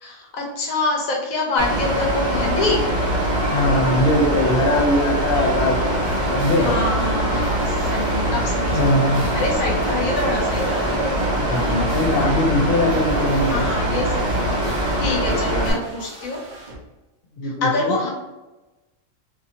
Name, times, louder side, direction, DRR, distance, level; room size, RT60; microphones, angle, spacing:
voice 1, 0.0-2.9 6.6-8.9 9.3-10.8 11.5-11.9 12.2-12.4 13.5-14.4 15.0-16.4 17.4-18.1, left 2 dB, 75° left, -1 dB, 1.1 m, -26 dB
Mechanical fan, 1.6-15.7, right 1 dB, 30° left, 1.1 m, -22 dB
voice 2, 3.5-6.7 8.7-9.3 11.4-13.7 17.4-18.0, left 1 dB, 60° left, 0 dB, 0.6 m, -21 dB
sound 1, 5.8-16.8, right 1 dB, 45° right, 0.7 m, -39 dB
2.7 x 2.6 x 2.7 m, 1.1 s
omnidirectional pair, 1.5 m